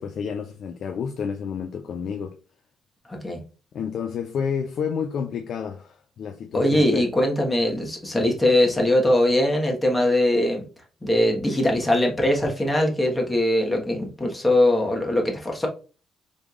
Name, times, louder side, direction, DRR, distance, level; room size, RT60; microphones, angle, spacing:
voice 1, 0.0-2.3 3.7-7.1, left 6 dB, 65° left, 0.5 m, -30 dB
voice 2, 3.1-3.4 6.5-10.6 11.0-15.7, left 1 dB, 15° left, 1.4 m, -21 dB
5.1 x 3.4 x 2.5 m
cardioid pair, 90°, 0 cm